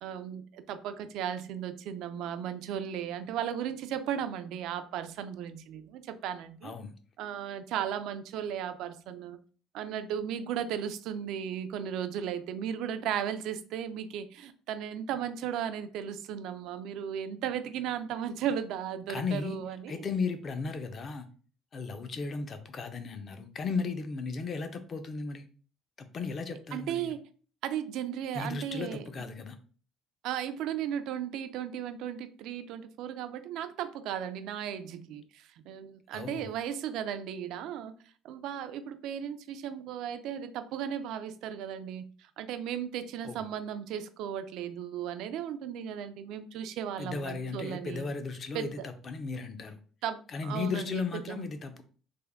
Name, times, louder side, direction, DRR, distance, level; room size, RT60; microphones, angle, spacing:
voice 1, 0.0-6.7 7.2-9.4 9.7-20.0 26.7-27.2 27.6-29.0 30.2-37.9 38.2-48.1 48.5-48.7 50.0-51.5, right 9 dB, 65° right, 0.3 m, -36 dB
voice 2, 6.6-6.9 19.1-19.6 19.9-21.3 21.7-25.5 26.0-27.1 28.3-29.6 36.1-36.5 43.2-43.4 47.0-49.8 50.3-51.8, left 4 dB, 30° left, 0.4 m, -35 dB
3.4 x 2.1 x 3.4 m
cardioid pair, 165°, 0 cm